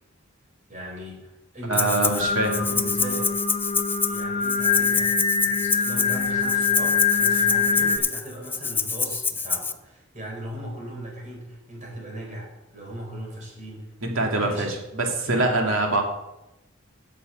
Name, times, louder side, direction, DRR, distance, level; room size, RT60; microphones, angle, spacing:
voice 1, 0.7-3.3 4.0-5.2 5.5-14.8 15.3-15.4, right 1 dB, 40° right, -1 dB, 4.7 m, -38 dB
Rattle (instrument), 1.7-2.2 2.5-9.7, left 4 dB, 10° left, 0.4 m, -27 dB
voice 2, 1.7-2.6 14.0-16.0, right 2 dB, 70° right, 1 dB, 2.4 m, -24 dB
Singing, 2.2-8.0, left 5 dB, 35° left, 1.2 m, -24 dB
9.9 x 6.8 x 8.0 m, 0.93 s
head